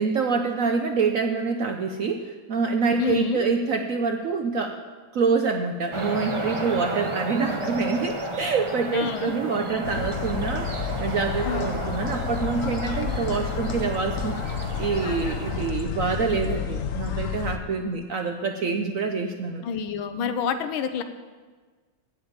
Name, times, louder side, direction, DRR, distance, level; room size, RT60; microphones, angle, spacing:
voice 1, 0.0-4.8 5.1-19.6, right 4 dB, 70° right, 4 dB, 0.8 m, -26 dB
voice 2, 3.0-3.4 8.9-9.3 11.4-11.8 19.6-21.0, left 7 dB, 90° left, 9 dB, 1.6 m, -28 dB
sound 1, 5.9-15.7, right 2 dB, 45° right, 0.4 m, -33 dB
sound 2, 9.8-17.6, left 7 dB, 65° left, 0.8 m, -30 dB
8.8 x 7.9 x 8.7 m, 1.4 s
omnidirectional pair, 2.2 m